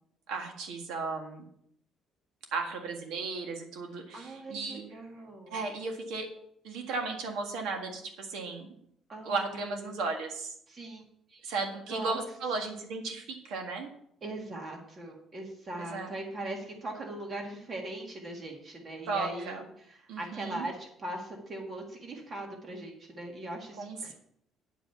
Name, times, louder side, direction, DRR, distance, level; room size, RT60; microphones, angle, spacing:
voice 1, 0.3-1.4 2.5-4.8 5.5-6.3 6.6-8.7 9.3-10.5 11.4-13.9 15.8-16.1 19.1-19.6 20.1-20.7 23.8-24.1, right 4 dB, 80° right, 3 dB, 1.8 m, -35 dB
voice 2, 4.1-5.6 9.1-9.9 10.7-11.0 11.3-11.5 11.9-12.2 14.2-24.1, right 1 dB, 25° right, 1 dB, 1.9 m, -40 dB
10.0 x 5.1 x 6.9 m, 0.70 s
cardioid pair, 180°, 0 cm